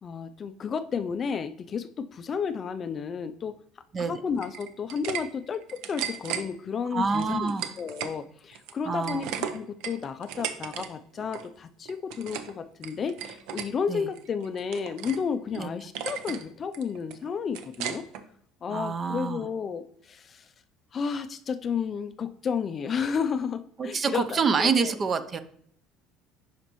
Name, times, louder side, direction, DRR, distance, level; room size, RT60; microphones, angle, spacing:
voice 1, 0.0-3.6 4.0-18.1 18.6-20.5 20.9-25.0, left 6 dB, 30° left, 11 dB, 0.4 m, -32 dB
sound 1, 4.4-5.2 5.5-6.4 7.1-8.2 8.5-10.9 11.1-11.5 11.9-12.5 12.8-13.7 14.1-15.2 15.5-15.6 16.0-16.4 16.7-18.2, right 9 dB, 75° right, 0.7 m, -35 dB
voice 2, 6.9-7.7 8.9-9.3 13.9-14.1 15.6-15.7 18.7-19.5 23.8-25.4, right 5 dB, 30° right, 11 dB, 0.5 m, -27 dB
9.8 x 5.1 x 3.0 m, 0.65 s
cardioid pair, 130°, 0 cm